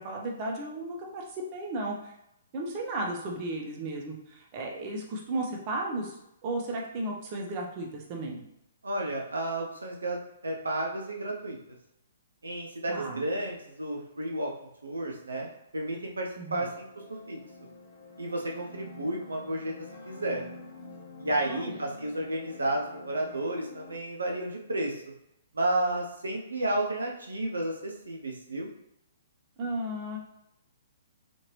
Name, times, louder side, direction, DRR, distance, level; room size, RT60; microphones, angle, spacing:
voice 1, 0.0-2.1 2.5-8.4 12.9-13.3 16.4-16.7 21.5-21.8 29.6-30.2, right 2 dB, 35° right, -1 dB, 0.7 m, -34 dB
voice 2, 8.8-10.2 10.4-11.6 12.4-14.5 14.8-16.9 17.3-17.4 18.2-19.7 20.1-20.4 21.2-25.0 25.5-28.7, right 1 dB, 85° right, 0 dB, 0.5 m, -32 dB
sound 1, 16.4-24.0, left 2 dB, 55° left, 0.8 m, -47 dB
2.9 x 2.6 x 2.9 m, 0.82 s
hypercardioid pair, 125°, 0 cm